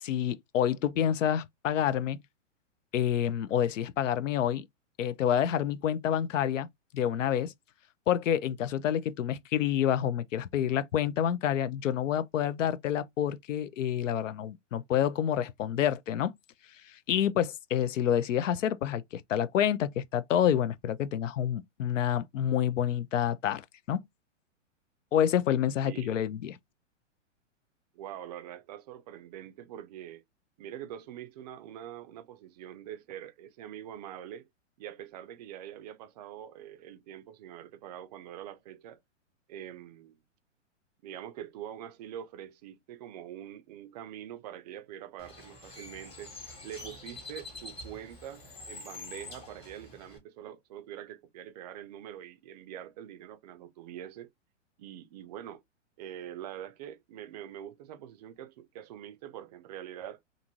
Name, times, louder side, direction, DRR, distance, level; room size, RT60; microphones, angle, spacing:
voice 1, 0.0-2.2 2.9-4.7 5.0-6.7 6.9-7.5 8.1-16.3 16.9-24.0 25.1-26.6, left 10 dB, 80° left, 0.5 m, -28 dB
voice 2, 25.8-26.2 27.9-30.2 30.6-34.5 34.8-39.0 39.5-40.2 41.0-46.3 46.6-54.3 54.8-55.6 56.0-60.2, right 11 dB, 35° right, 0.4 m, -44 dB
Bird, 45.2-50.2, left 2 dB, 15° left, 1.1 m, -46 dB
2.6 x 2.5 x 2.9 m
hypercardioid pair, 125°, 38 cm